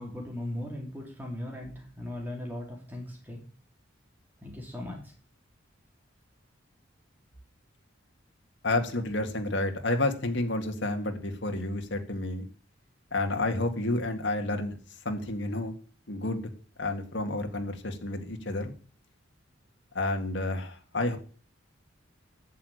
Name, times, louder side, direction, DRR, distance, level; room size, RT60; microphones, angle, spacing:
voice 1, 0.0-3.4 4.4-5.1, left 1 dB, 10° right, 0 dB, 4.2 m, -38 dB
voice 2, 8.6-12.5 13.1-14.8 15.1-15.7 16.1-16.5 16.8-18.7 19.9-21.2, left 2 dB, 65° left, 5 dB, 2.1 m, -30 dB
11.0 x 6.7 x 9.2 m, 0.41 s
head